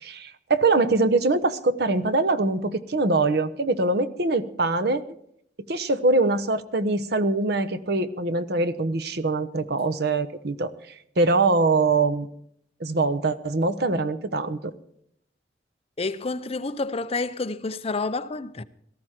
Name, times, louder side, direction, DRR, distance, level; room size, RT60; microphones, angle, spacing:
voice 1, 0.0-5.0 5.7-10.7 11.2-12.3 12.8-14.7, right 3 dB, 60° right, 0.9 m, -23 dB
voice 2, 16.0-18.6, left 3 dB, 35° left, 0.6 m, -29 dB
18.0 x 14.0 x 4.4 m
head